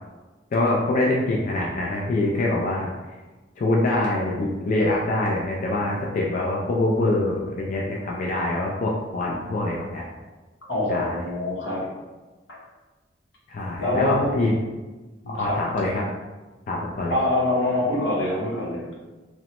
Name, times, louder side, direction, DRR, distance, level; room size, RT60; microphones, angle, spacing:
voice 1, 0.5-2.9 3.6-10.0 10.9-11.2 13.5-14.6 15.3-16.0 16.7-17.2, left 2 dB, 45° left, -3 dB, 0.3 m, -24 dB
voice 2, 10.7-11.9 12.5-12.6 13.8-14.4 15.2-15.6 17.1-18.9, left 1 dB, 80° left, -4 dB, 0.9 m, -25 dB
3.0 x 2.0 x 2.8 m, 1.2 s
head